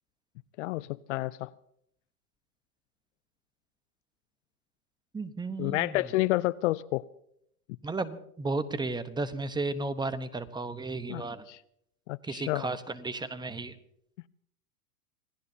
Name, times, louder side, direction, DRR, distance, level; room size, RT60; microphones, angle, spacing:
voice 1, 0.6-1.5 5.6-7.0 11.1-11.6 12.1-12.7, left 18 dB, 50° left, 19 dB, 0.5 m, -30 dB
voice 2, 5.1-6.0 7.8-11.4 12.2-13.7, right 3 dB, 10° right, 12 dB, 0.9 m, -34 dB
27.0 x 18.5 x 2.8 m, 0.73 s
hypercardioid pair, 110°, 47 cm